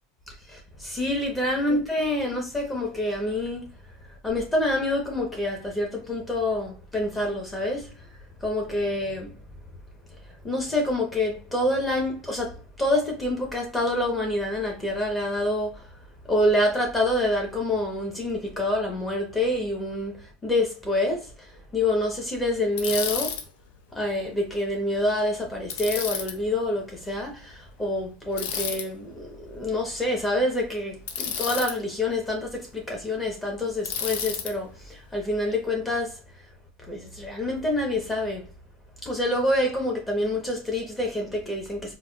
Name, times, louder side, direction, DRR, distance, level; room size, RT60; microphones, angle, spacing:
voice 1, 0.3-3.7 4.0-8.1 8.4-9.4 10.4-15.9 16.3-23.4 23.9-36.2 36.9-38.5 39.0-41.9, left 1 dB, 10° left, 0.9 m, -27 dB
Bicycle, 22.8-23.4 25.7-26.3 28.4-28.8 31.1-31.7 33.8-34.5, left 7 dB, 70° left, 0.5 m, -30 dB
4.1 x 2.3 x 2.3 m
supercardioid pair, 165°, 0 cm